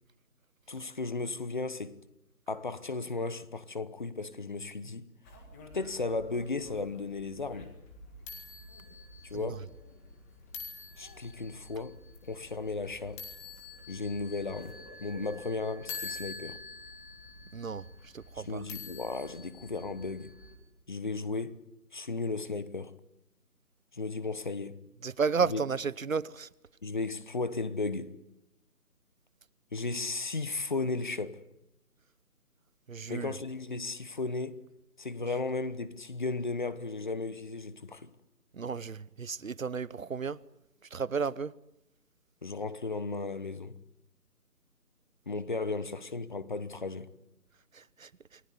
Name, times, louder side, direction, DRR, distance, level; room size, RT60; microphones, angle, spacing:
voice 1, 0.7-2.0 2.5-5.0 5.7-7.7 9.2-9.7 11.0-13.2 13.9-16.6 18.5-20.3 20.9-21.6 21.9-23.0 23.9-24.8 25.5-25.6 26.8-28.2 29.7-31.4 33.1-34.6 35.0-38.1 42.4-43.8 45.3-47.1, left 3 dB, 30° left, 1.1 m, -35 dB
sound 1, 5.2-20.6, left 4 dB, 10° left, 2.0 m, -47 dB
voice 2, 17.5-18.7 25.0-26.5 32.9-33.4 38.5-40.4 40.9-41.5 47.7-48.4, right 5 dB, 60° right, 0.9 m, -33 dB
28.5 x 19.5 x 9.6 m
figure-of-eight pair, 165°, 46 cm